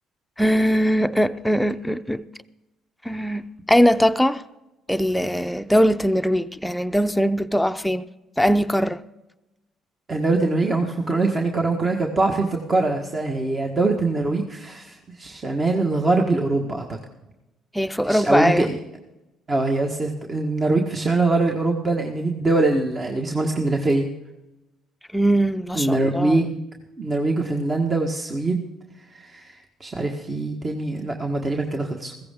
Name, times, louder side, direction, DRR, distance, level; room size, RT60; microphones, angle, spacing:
voice 1, 0.4-2.2 3.0-4.4 4.9-8.0 8.4-9.0 17.7-18.7 25.1-26.4, equal, 5° left, 0.6 m, -21 dB
voice 2, 10.1-17.0 18.0-18.8 19.5-24.1 25.7-26.6 27.0-28.6 29.1-32.1, right 2 dB, 35° right, 1.5 m, -23 dB
15.5 x 14.5 x 3.7 m
hypercardioid pair, 60°, 0 cm